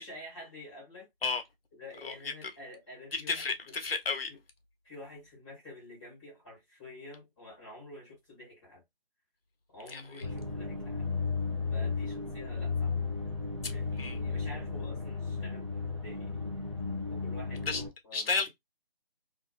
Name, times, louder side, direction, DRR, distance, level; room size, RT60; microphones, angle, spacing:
voice 1, 0.0-1.1 1.7-3.8 4.3-4.4 4.8-8.8 9.7-11.1 11.7-13.1 13.7-16.4 17.1-18.5, left 1 dB, ahead, 1.0 m, -49 dB
voice 2, 2.0-2.3 3.1-4.3 9.9-10.0 14.0-14.2 17.7-17.8 18.1-18.5, left 4 dB, 70° left, 0.7 m, -32 dB
sound 1, 10.2-17.9, left 4 dB, 30° right, 0.4 m, -34 dB
2.4 x 2.4 x 2.3 m
figure-of-eight pair, 165°, 31 cm